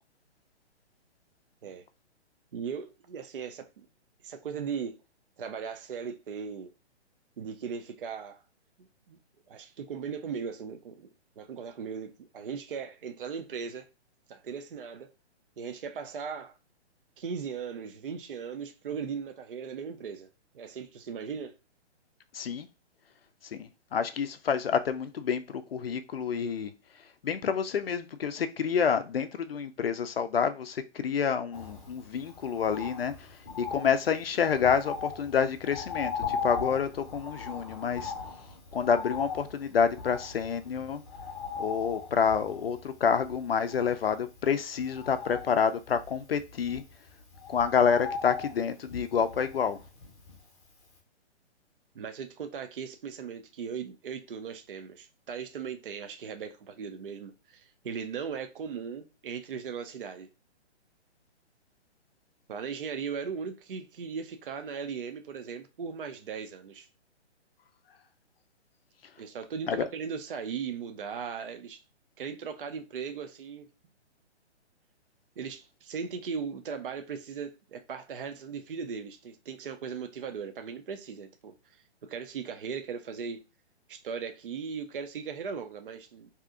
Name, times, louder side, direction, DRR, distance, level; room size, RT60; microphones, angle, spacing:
voice 1, 2.5-3.6 4.2-4.9 5.4-6.7 7.4-8.4 9.1-9.2 9.5-13.9 14.3-15.1 15.6-16.6 17.2-20.3 20.5-21.5 51.9-60.3 62.5-66.9 69.2-71.8 72.2-73.7 75.4-81.5 82.1-83.4 83.9-86.3, right 6 dB, 50° right, 0.5 m, -38 dB
voice 2, 22.3-22.7 23.5-26.7 27.2-33.3 33.6-38.1 38.7-41.0 41.6-46.8 47.5-49.8 69.7-69.9, left 7 dB, 60° left, 0.4 m, -28 dB
Bird, 31.5-50.6 51.0-51.1, left 5 dB, 15° left, 0.7 m, -40 dB
2.7 x 2.5 x 3.6 m
hypercardioid pair, 175°, 34 cm